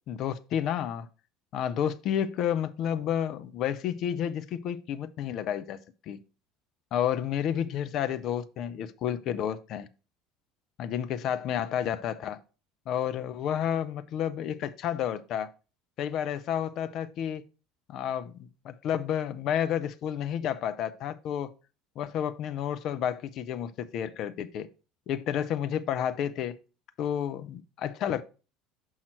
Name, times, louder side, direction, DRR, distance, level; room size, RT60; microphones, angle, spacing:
voice 1, 0.1-1.1 1.5-5.8 6.1-6.2 6.9-9.9 10.8-12.4 12.9-15.5 16.0-17.4 17.9-21.5 22.0-24.7 25.1-26.6 27.0-28.2, left 9 dB, 50° left, 0.6 m, -31 dB
6.4 x 5.6 x 4.4 m
figure-of-eight pair, 65°, 0 cm